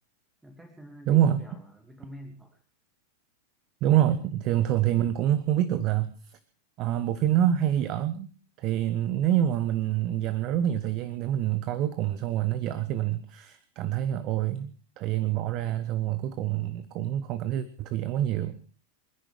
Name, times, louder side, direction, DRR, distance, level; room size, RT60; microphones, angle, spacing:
voice 1, 0.4-2.6 4.1-4.2, equal, 5° right, 4 dB, 2.5 m, -47 dB
voice 2, 1.1-1.4 3.8-6.4 6.8-8.3 8.6-18.6, right 11 dB, 40° right, 15 dB, 1.2 m, -26 dB
27.5 x 10.5 x 5.0 m, 0.39 s
figure-of-eight pair, 90°, 0 cm